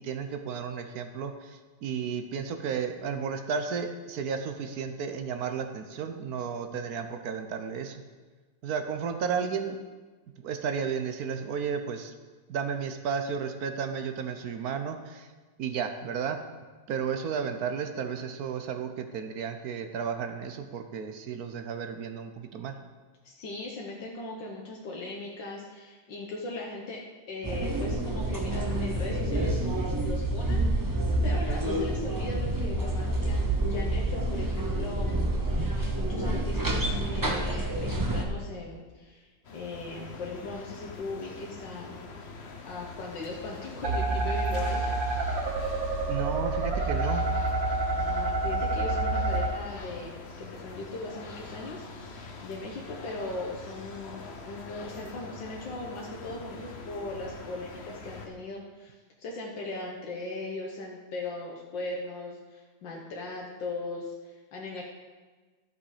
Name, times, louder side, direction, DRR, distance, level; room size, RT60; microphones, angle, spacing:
voice 1, 0.0-8.0 8.6-9.8 10.4-12.1 12.5-15.3 15.6-16.4 16.9-22.8 46.1-47.2, right 6 dB, 65° right, 7 dB, 1.1 m, -33 dB
voice 2, 23.2-29.6 30.0-31.0 31.2-42.0 42.7-45.0 47.9-64.8, left 2 dB, 80° left, -2 dB, 1.8 m, -39 dB
sound 1, 27.4-38.2, right 1 dB, 20° right, 0.6 m, -28 dB
sound 2, 39.4-58.3, left 3 dB, 45° left, 1.0 m, -44 dB
sound 3, 43.8-49.5, right 2 dB, 85° right, 2.0 m, -28 dB
12.0 x 7.0 x 4.9 m, 1.3 s
omnidirectional pair, 2.0 m